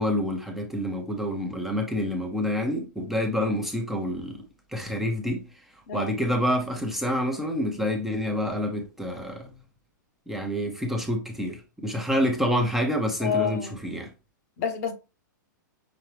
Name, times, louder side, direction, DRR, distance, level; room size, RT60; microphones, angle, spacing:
voice 1, 0.0-4.4 4.7-5.5 5.9-9.5 10.3-14.1, equal, 5° right, 0.8 m, -27 dB
voice 2, 13.2-13.8 14.6-14.9, left 7 dB, 55° left, 1.1 m, -28 dB
5.9 x 2.3 x 3.4 m
hypercardioid pair, 130°, 11 cm